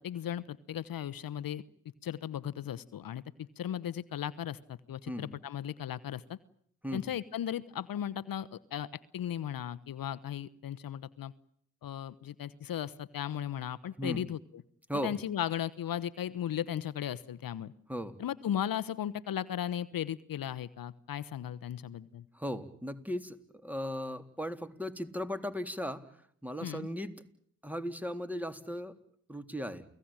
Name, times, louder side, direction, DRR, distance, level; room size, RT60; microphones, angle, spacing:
voice 1, 0.0-1.6 2.0-6.4 6.9-11.3 11.8-14.6 14.9-17.7 18.2-22.3 26.6-26.9, left 10 dB, 65° left, 14 dB, 1.1 m, -36 dB
voice 2, 22.3-23.4 23.6-26.0 26.4-27.1 27.6-28.9 29.3-29.8, equal, 5° right, 9 dB, 3.6 m, -37 dB
29.5 x 18.5 x 9.0 m, 0.65 s
supercardioid pair, 45°, 37 cm